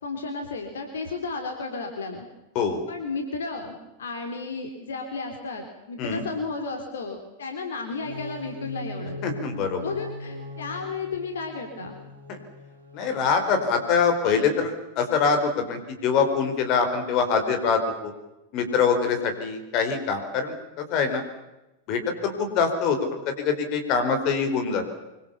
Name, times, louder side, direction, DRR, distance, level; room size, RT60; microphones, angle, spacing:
voice 1, 0.0-2.3 2.9-9.2 9.8-12.0, left 4 dB, 65° left, 4 dB, 3.6 m, -33 dB
sound 1, 7.9-13.8, left 2 dB, 75° right, 4.0 m, -40 dB
voice 2, 9.2-9.8 12.3-12.4 12.9-18.1 18.5-21.2 21.9-24.8, left 5 dB, 40° left, 7 dB, 4.6 m, -24 dB
25.5 x 24.5 x 7.1 m, 0.99 s
figure-of-eight pair, 90°, 0 cm